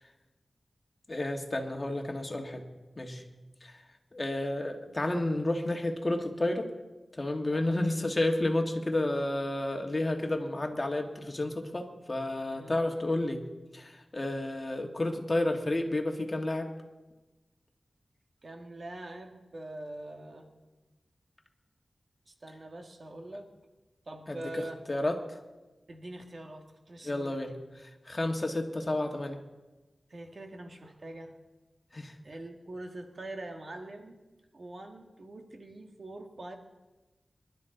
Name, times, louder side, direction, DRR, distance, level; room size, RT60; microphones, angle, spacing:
voice 1, 1.1-2.7 3.0-3.2 3.6-3.7 4.1-6.7 7.1-13.4 13.7-16.7 24.3-25.4 27.0-29.4 31.9-32.1, left 1 dB, 35° left, 3 dB, 1.7 m, -31 dB
voice 2, 7.5-8.0 12.5-13.2 18.4-20.5 22.3-23.5 24.1-24.8 25.9-27.6 30.1-31.4 32.2-34.2 34.5-36.6, right 1 dB, 55° right, 3 dB, 1.7 m, -44 dB
24.5 x 12.0 x 3.9 m, 1.1 s
wide cardioid pair, 80°, 0 cm